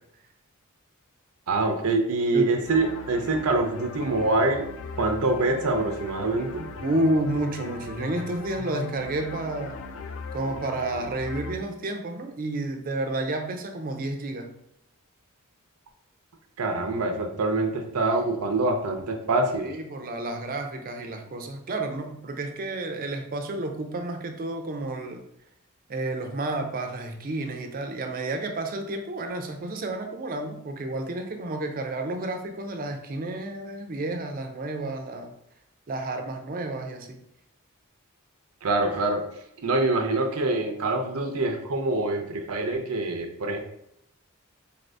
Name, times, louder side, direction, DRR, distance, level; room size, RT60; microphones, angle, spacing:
voice 1, 1.5-4.6 5.0-6.6 16.6-19.7 38.6-39.2 39.6-43.6, right 2 dB, 85° right, 4 dB, 0.6 m, -25 dB
sound 1, 2.7-11.5, left 4 dB, 65° left, 0.4 m, -39 dB
voice 2, 6.8-9.8 10.3-14.6 19.6-25.2 25.9-35.4 35.9-37.2, right 2 dB, 40° right, 5 dB, 0.5 m, -30 dB
4.1 x 2.6 x 3.3 m, 0.78 s
head